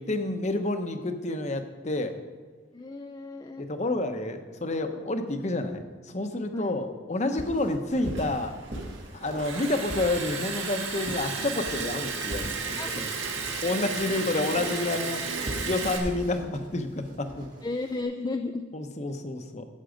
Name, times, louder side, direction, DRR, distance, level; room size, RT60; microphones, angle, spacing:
voice 1, 0.0-2.2 3.6-8.6 9.1-12.5 13.0-13.1 13.6-17.5 18.7-19.7, left 2 dB, 35° left, 7 dB, 0.9 m, -29 dB
voice 2, 2.7-3.7 6.5-6.8 12.8-13.0 17.6-18.6, left 3 dB, 20° left, 6 dB, 0.3 m, -33 dB
sound 1, 7.4-18.0, right 1 dB, 45° right, 2.0 m, -41 dB
Liquid, 7.9-16.0, right 5 dB, 85° right, 1.9 m, -34 dB
13.0 x 8.1 x 5.1 m, 1.4 s
head